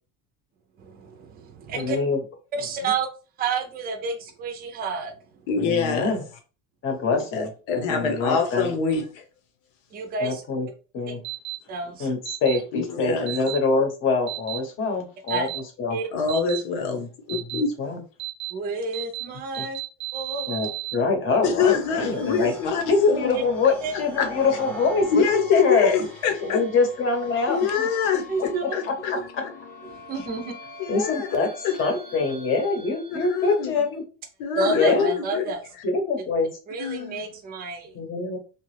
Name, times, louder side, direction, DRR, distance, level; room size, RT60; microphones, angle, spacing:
voice 1, 0.8-2.0 2.5-3.1 3.4-5.1 9.9-10.4 11.7-12.1 15.3-15.5 15.9-16.1 18.5-19.8 20.1-20.7 23.8-23.9 28.3-28.6 29.1-29.3 29.8-30.5 34.6-35.6 36.7-37.9, right 3 dB, 25° right, 0.6 m, -29 dB
voice 2, 1.7-2.2 5.6-6.2 6.8-8.7 10.2-10.7 10.9-11.2 12.0-16.0 16.8-17.1 17.5-18.0 19.6-19.7 20.5-22.5 22.9-26.1 26.4-27.9 28.1-28.5 28.9-29.4 30.9-31.5 31.8-34.0 34.7-35.1 35.8-36.5 37.9-38.4, left 4 dB, 35° left, 0.9 m, -24 dB
voice 3, 5.5-6.1 7.3-9.2 12.7-13.3 16.1-17.0 17.3-17.7 21.4-23.4 24.2-24.3 25.1-26.6 27.5-29.1 30.8-31.3 31.6-31.8 33.1-33.8 34.4-35.4 36.8-37.3, left 6 dB, 75° left, 1.0 m, -25 dB
sound 1, 11.2-11.6 12.3-12.6 13.3-13.6 14.3-14.6 15.3-15.6 16.3-16.6 17.3-17.6 18.2-18.5 18.9-19.2 19.5-20.9, right 22 dB, 85° right, 0.7 m, -32 dB
sound 2, 21.3-33.8, left 2 dB, 5° left, 1.0 m, -42 dB
2.9 x 2.4 x 3.2 m
cardioid pair, 155°, 34 cm